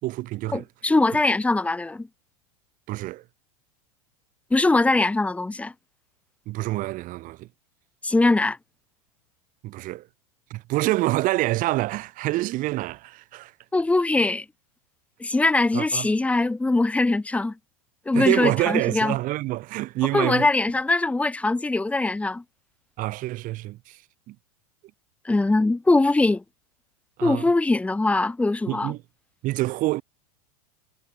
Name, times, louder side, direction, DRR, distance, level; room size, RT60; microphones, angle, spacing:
voice 1, 0.0-0.6 2.9-3.2 6.5-7.5 9.6-10.1 10.5-13.5 15.7-16.1 18.1-20.5 23.0-24.0 24.3-24.4 27.2-27.5 28.7-29.0 29.4-30.0, right 18 dB, 45° right, 4.1 m, -26 dB
voice 2, 0.5-2.1 4.5-5.7 8.0-8.6 13.7-14.4 15.2-17.5 18.0-19.1 20.1-22.4 25.2-26.4 27.2-28.9, left 2 dB, 5° left, 1.6 m, -22 dB
hypercardioid pair, 120°, 19 cm